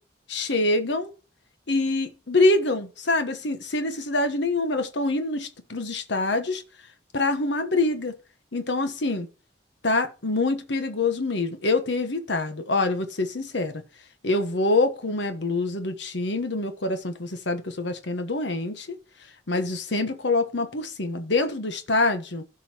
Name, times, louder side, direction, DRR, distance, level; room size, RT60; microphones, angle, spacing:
voice 1, 0.3-1.1 1.7-6.6 7.1-8.1 8.5-9.3 9.8-13.8 14.2-19.0 19.5-22.4, left 2 dB, 75° left, 1.2 m, -25 dB
16.0 x 5.5 x 2.9 m
head